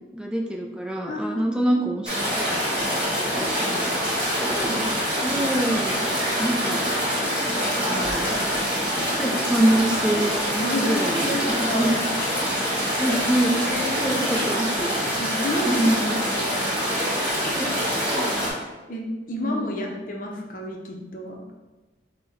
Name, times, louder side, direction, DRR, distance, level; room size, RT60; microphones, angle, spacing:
voice 1, 0.1-3.9 4.4-4.8 5.2-6.0 6.4-6.9 7.8-8.4 9.1-11.9 13.0-13.6 14.0-15.0 15.6-16.4 17.5-17.8 18.1-18.3 19.4-19.7, right 1 dB, 5° right, 0 dB, 0.4 m, -26 dB
voice 2, 1.1-2.0 4.5-5.0 10.6-12.1 13.7-14.5 15.2-16.8 18.9-21.4, left 1 dB, 50° left, 0 dB, 0.6 m, -31 dB
sound 1, 2.0-18.5, equal, 30° right, 1.5 m, -25 dB
5.8 x 2.2 x 4.1 m, 1.2 s
head